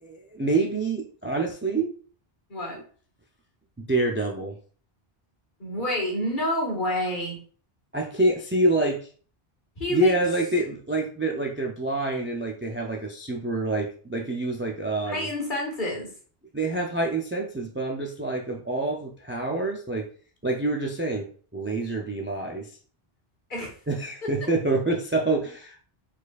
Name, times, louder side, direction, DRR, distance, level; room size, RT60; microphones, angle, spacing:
voice 1, 0.0-1.9 3.8-4.5 7.9-9.0 9.9-15.3 16.5-20.1 20.4-21.3 21.5-22.7 23.9-25.8, right 2 dB, 20° right, 1 dB, 0.4 m, -26 dB
voice 2, 5.6-7.4 9.8-10.2 15.1-16.1 23.5-23.7 24.2-24.3, left 1 dB, 55° left, -2 dB, 1.8 m, -28 dB
4.8 x 4.3 x 2.4 m, 0.43 s
omnidirectional pair, 1.0 m